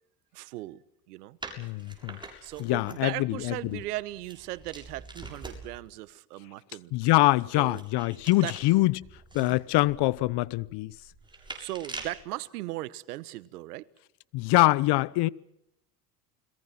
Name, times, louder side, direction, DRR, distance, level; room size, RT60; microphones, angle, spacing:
voice 1, 0.3-1.4 2.4-6.9 7.6-7.8 8.4-8.5 9.4-9.6 11.6-13.8, right 17 dB, 85° right, 1.2 m, -38 dB
sound 1, 1.4-5.9 7.4-12.2, right 2 dB, 10° right, 7.1 m, -45 dB
voice 2, 1.6-2.2 2.6-3.8 6.9-9.1 9.3-10.9 14.3-15.3, left 19 dB, 60° left, 1.0 m, -24 dB
30.0 x 22.0 x 6.0 m
hypercardioid pair, 75°, 45 cm